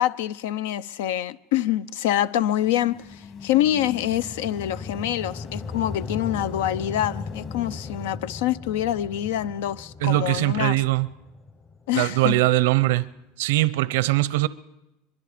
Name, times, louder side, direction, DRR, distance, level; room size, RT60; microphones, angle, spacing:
voice 1, 0.0-10.8 11.9-12.4, left 12 dB, 85° left, 0.6 m, -26 dB
sound 1, 2.0-8.2, left 5 dB, 40° left, 1.8 m, -45 dB
sound 2, 2.6-12.9, left 4 dB, 25° left, 0.9 m, -38 dB
voice 2, 10.0-11.1 11.9-13.1 13.4-14.5, right 18 dB, 85° right, 0.7 m, -21 dB
23.5 x 23.0 x 5.1 m
supercardioid pair, 145°, 0 cm